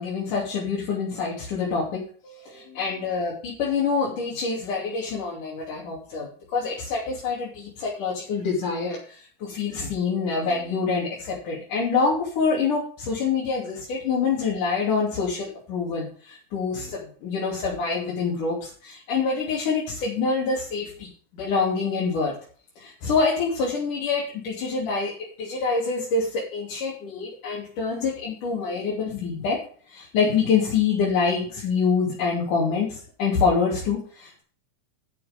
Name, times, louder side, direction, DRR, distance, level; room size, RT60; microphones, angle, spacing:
voice 1, 0.0-6.3 6.5-22.3 22.8-25.1 25.4-29.6 29.9-34.4, left 5 dB, 80° left, -4 dB, 4.4 m, -26 dB
12.5 x 6.7 x 5.2 m, 0.43 s
omnidirectional pair, 3.6 m